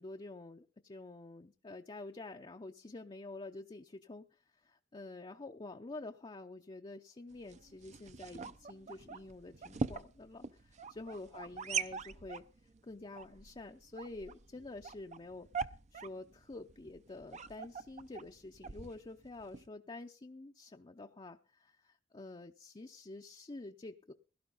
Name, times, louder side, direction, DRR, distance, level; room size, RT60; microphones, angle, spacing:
voice 1, 0.0-12.5 12.8-15.5 15.9-24.1, left 2 dB, 30° left, 4 dB, 0.6 m, -48 dB
sound 1, 7.3-19.7, right 5 dB, 40° right, 0.6 m, -43 dB
16.5 x 12.0 x 4.0 m, 0.37 s
head